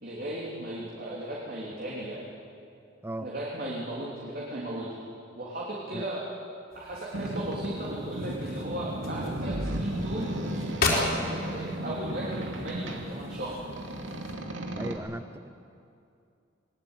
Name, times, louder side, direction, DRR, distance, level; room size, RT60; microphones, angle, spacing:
voice 1, 0.0-2.2 3.2-4.9 5.4-6.2 6.7-10.3 10.8-13.6, right 1 dB, 50° right, -5 dB, 3.5 m, -36 dB
newspapers small soft, 6.7-14.3, left 3 dB, 55° left, 4.6 m, -36 dB
Boat Water vehicle, 7.1-15.0, right 1 dB, 80° right, 2.6 m, -35 dB
voice 2, 14.7-15.5, right 1 dB, 15° right, 11 dB, 0.7 m, -36 dB
21.0 x 19.5 x 9.1 m, 2.5 s
head